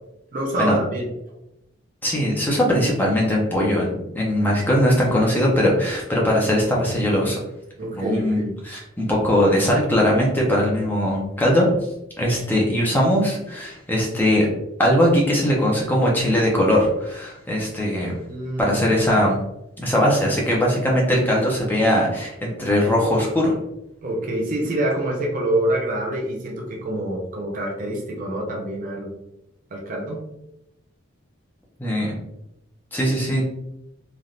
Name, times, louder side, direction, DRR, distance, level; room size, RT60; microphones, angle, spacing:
voice 1, 0.3-1.1 7.8-8.5 18.3-18.9 24.0-29.1 29.7-30.2, right 1 dB, 40° right, -1 dB, 0.5 m, -26 dB
voice 2, 2.0-7.4 8.0-11.7 12.2-14.5 14.8-18.1 18.6-19.4 19.8-23.5 31.8-32.2 32.9-33.4, equal, 10° left, -3 dB, 0.6 m, -20 dB
3.3 x 2.7 x 2.4 m, 0.85 s
head